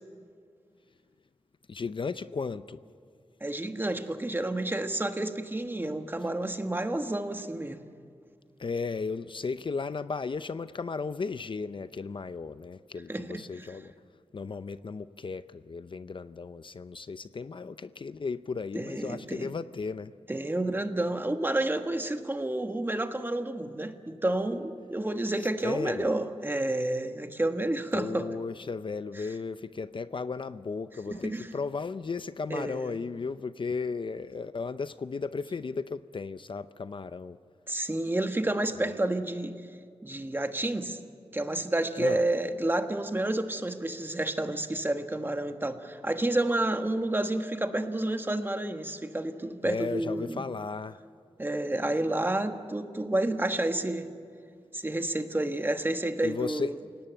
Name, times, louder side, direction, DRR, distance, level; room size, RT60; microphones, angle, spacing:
voice 1, 1.7-2.8 8.6-13.9 14.3-20.1 25.6-26.1 27.9-37.4 38.8-38.9 42.0-42.2 49.6-51.0 56.2-56.7, left 4 dB, 50° left, 0.6 m, -35 dB
voice 2, 3.4-7.8 13.1-13.7 18.7-19.5 20.3-28.3 29.1-29.3 31.1-31.5 32.5-33.0 37.7-39.5 40.0-41.0 41.3-50.4 51.4-54.1 54.7-56.7, right 1 dB, 20° right, 1.4 m, -30 dB
29.0 x 17.5 x 9.0 m
wide cardioid pair, 110°, 11 cm